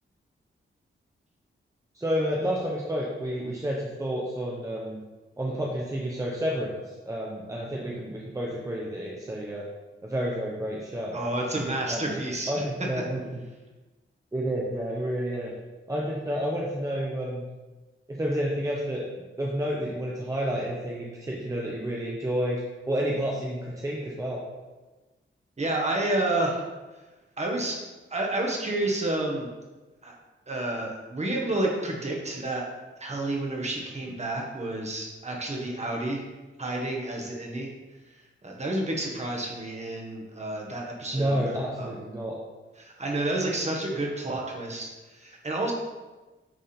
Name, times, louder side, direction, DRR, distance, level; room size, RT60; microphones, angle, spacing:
voice 1, 1.9-5.0 5.4-6.7 7.0-9.6 10.0-11.2 11.9-12.2 12.5-13.4 14.3-15.5 15.9-17.5 18.1-19.1 19.4-24.4 41.1-42.4, equal, 15° right, -3 dB, 0.8 m, -30 dB
voice 2, 11.1-12.5 25.6-26.6 27.4-27.8 28.1-29.5 30.0-30.1 30.5-32.6 33.0-36.2 36.6-37.7 38.4-41.5 41.8-41.9 42.8-45.7, right 2 dB, 30° right, -1 dB, 1.3 m, -30 dB
9.1 x 3.5 x 4.4 m, 1.2 s
wide cardioid pair, 155°, 21 cm